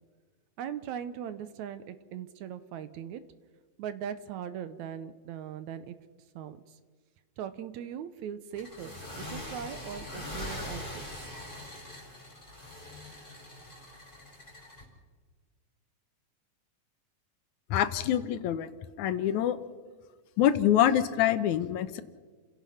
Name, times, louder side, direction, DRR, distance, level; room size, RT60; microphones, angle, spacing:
voice 1, 0.6-3.2 3.8-6.0 6.4-6.8 7.4-11.0, right 9 dB, 70° right, 12 dB, 2.1 m, -39 dB
sound 1, 8.6-14.8, left 1 dB, 15° left, 5.2 m, -42 dB
voice 2, 17.7-18.7 19.0-19.6 20.4-22.0, left 11 dB, 75° left, 11 dB, 2.1 m, -25 dB
30.0 x 16.5 x 5.8 m, 1.4 s
omnidirectional pair, 3.7 m